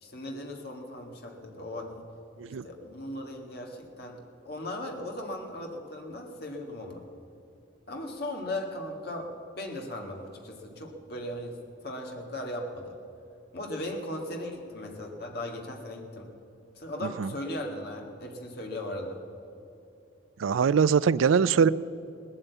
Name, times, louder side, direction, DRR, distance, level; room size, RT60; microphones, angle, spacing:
voice 1, 0.0-2.0 2.6-4.2 4.5-7.0 7.9-9.3 9.5-11.6 11.8-12.9 13.5-16.3 16.7-19.2, left 1 dB, 55° left, 1 dB, 1.8 m, -37 dB
voice 2, 20.4-21.7, right 6 dB, 90° right, 18 dB, 0.4 m, -22 dB
18.5 x 8.8 x 8.2 m, 2.8 s
head